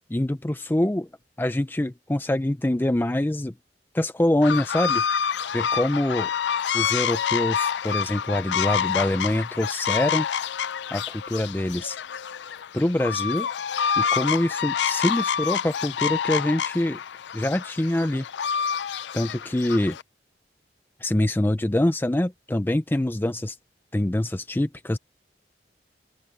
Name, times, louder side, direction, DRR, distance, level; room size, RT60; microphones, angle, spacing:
voice 1, 0.1-1.1 1.4-3.5 3.9-5.0 5.5-6.3 6.7-10.3 10.9-12.0 12.7-13.5 14.0-17.0 17.3-18.2 19.1-20.0 21.0-23.6 23.9-25.0, left 1 dB, 10° left, 0.4 m, -25 dB
sound 1, 4.4-20.0, left 7 dB, 80° left, 0.4 m, -27 dB
open air
head